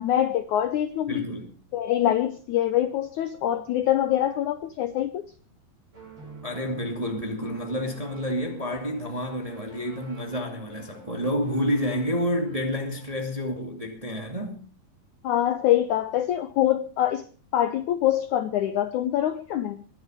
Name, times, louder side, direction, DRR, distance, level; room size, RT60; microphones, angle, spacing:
voice 1, 0.0-1.3 1.7-5.3 15.2-17.2 17.5-19.8, left 12 dB, 70° left, 1.9 m, -24 dB
voice 2, 1.1-1.5 6.4-14.6, equal, 15° right, 1.7 m, -29 dB
sound 1, 5.9-13.4, right 4 dB, 40° right, 7.4 m, -48 dB
22.0 x 10.5 x 5.1 m
omnidirectional pair, 4.3 m